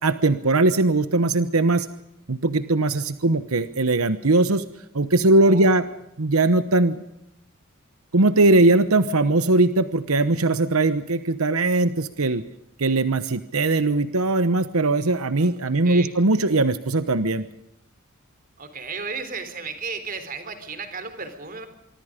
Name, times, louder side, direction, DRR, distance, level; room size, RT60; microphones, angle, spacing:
voice 1, 0.0-1.9 2.3-4.6 4.9-5.8 6.2-7.0 8.1-12.4 12.8-17.5, right 2 dB, 90° right, 12 dB, 1.1 m, -20 dB
voice 2, 5.4-5.8 15.4-16.1 18.6-21.7, right 4 dB, 40° right, 9 dB, 3.9 m, -34 dB
25.5 x 24.0 x 5.2 m, 0.81 s
head